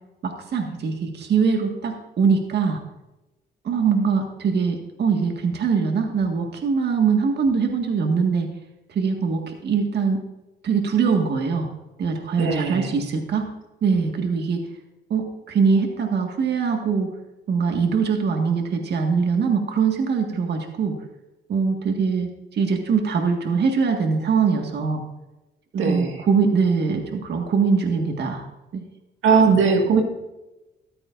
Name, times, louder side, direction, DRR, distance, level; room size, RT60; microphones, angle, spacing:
voice 1, 0.2-2.8 3.6-8.5 8.9-10.2 10.6-11.7 12.0-13.5 13.8-14.6 15.1-17.1 17.5-20.9 21.5-25.0 25.7-28.4 28.7-28.8, right 5 dB, 55° right, 3 dB, 1.7 m, -22 dB
voice 2, 12.4-12.9 25.8-26.2 29.2-30.0, right 5 dB, 80° right, 2 dB, 1.9 m, -19 dB
14.0 x 13.0 x 2.6 m, 0.99 s
cardioid pair, 90°, 20 cm